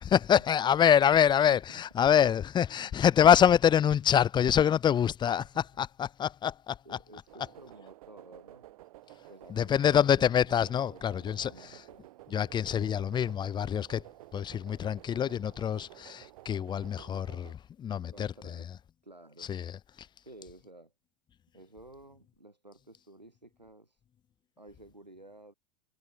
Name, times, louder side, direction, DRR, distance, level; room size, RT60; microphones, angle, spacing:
voice 1, 0.0-6.8 9.5-11.5 12.3-14.0 14.3-18.3 19.5-19.7 20.0-20.1, left 9 dB, 20° left, 0.7 m, -25 dB
voice 2, 1.1-2.1 2.7-2.9 5.5-5.6 6.8-8.7 9.3-10.3 10.9-12.0 18.0-18.8 19.0-19.5 20.2-20.9 21.5-24.0 24.6-25.5, right 1 dB, 90° right, 5.0 m, -53 dB
sound 1, 7.3-17.5, right 16 dB, 60° right, 2.9 m, -53 dB
figure-of-eight pair, 85°, 21 cm